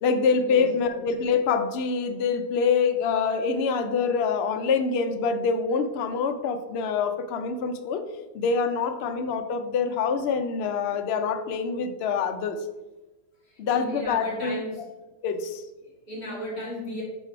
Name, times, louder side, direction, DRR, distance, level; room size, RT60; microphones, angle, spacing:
voice 1, 0.0-8.0 8.3-12.6 13.6-14.6 15.2-15.6, left 5 dB, 85° left, 7 dB, 0.5 m, -25 dB
voice 2, 13.5-14.9 15.8-17.0, equal, 40° left, -4 dB, 2.7 m, -35 dB
9.2 x 3.3 x 4.6 m, 1.1 s
omnidirectional pair, 1.8 m